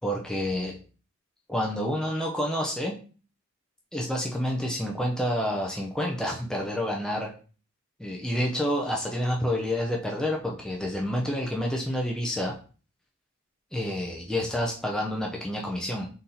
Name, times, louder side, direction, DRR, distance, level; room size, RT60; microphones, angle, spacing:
voice 1, 0.0-0.8 1.5-3.0 3.9-7.3 8.0-12.5 13.7-16.1, equal, 5° left, -1 dB, 0.4 m, -28 dB
3.8 x 2.7 x 4.1 m, 0.39 s
head